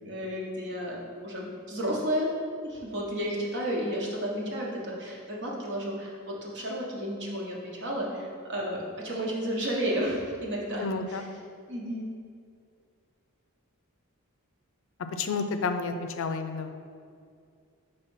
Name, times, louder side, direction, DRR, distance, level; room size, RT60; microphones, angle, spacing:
voice 1, 0.0-2.3 2.6-11.2 11.7-12.1, equal, 55° right, -2 dB, 1.1 m, -32 dB
voice 2, 10.8-11.2 15.1-16.7, left 4 dB, 65° left, 8 dB, 0.4 m, -30 dB
5.6 x 3.3 x 5.5 m, 2.3 s
head